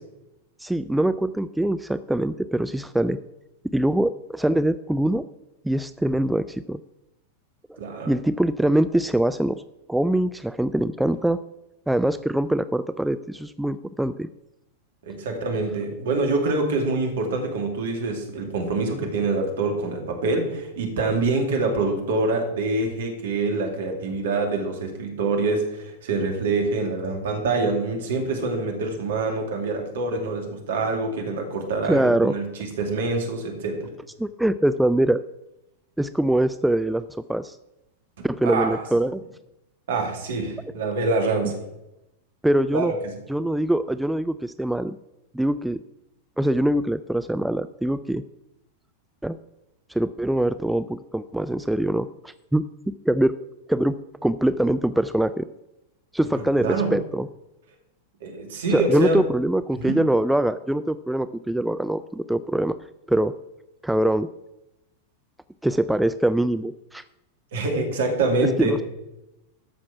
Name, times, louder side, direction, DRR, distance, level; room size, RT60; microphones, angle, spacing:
voice 1, 0.6-3.2 3.7-5.2 5.6-6.8 7.7-7.8 8.1-9.6 9.9-11.4 11.9-14.3 31.8-32.3 34.2-35.2 36.0-37.0 37.3-37.6 38.2-39.2 42.4-42.9 43.3-45.0 45.3-45.8 46.4-48.2 49.2-49.4 49.9-53.3 53.7-53.9 54.2-55.5 56.1-57.3 58.7-62.8 63.1-63.3 63.8-64.3 65.6-67.0 68.6-68.8, right 1 dB, 5° right, 13 dB, 0.3 m, -23 dB
voice 2, 7.8-8.1 15.0-33.9 38.4-38.8 39.9-41.6 42.7-43.2 56.4-56.9 58.2-59.2 59.8-60.0 67.5-68.8, right 3 dB, 60° right, 3 dB, 2.5 m, -25 dB
13.5 x 6.0 x 5.9 m, 0.91 s
figure-of-eight pair, 90°, 0 cm